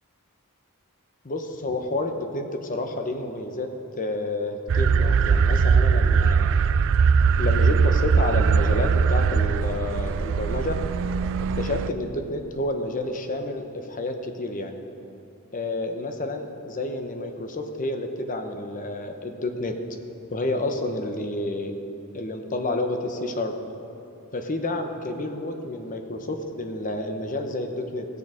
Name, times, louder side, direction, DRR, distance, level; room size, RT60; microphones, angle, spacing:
voice 1, 1.2-3.7 4.0-6.5 7.4-10.8 11.6-14.8 15.5-19.7 20.3-21.7 22.1-23.5 24.3-28.1, left 2 dB, 35° left, 5 dB, 0.9 m, -29 dB
sound 1, 4.7-11.9, right 5 dB, 60° right, 0.3 m, -20 dB
17.0 x 6.9 x 5.0 m, 2.8 s
head